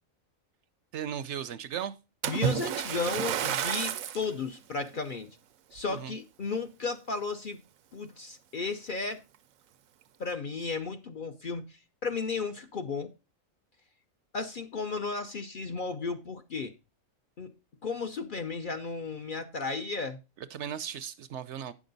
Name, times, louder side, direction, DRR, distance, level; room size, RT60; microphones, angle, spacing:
voice 1, 0.9-2.0 5.9-6.1 20.5-21.7, right 9 dB, 65° right, 0.8 m, -36 dB
Splash splatter, 2.2-4.3 4.9-5.2 5.8-5.9, right 10 dB, 90° right, 1.1 m, -31 dB
voice 2, 2.3-5.4 5.7-7.6 7.9-9.2 10.2-13.1 14.3-16.8 17.4-17.5 17.8-20.2, left 4 dB, 50° left, 0.7 m, -34 dB
9.4 x 6.1 x 3.9 m
omnidirectional pair, 1.4 m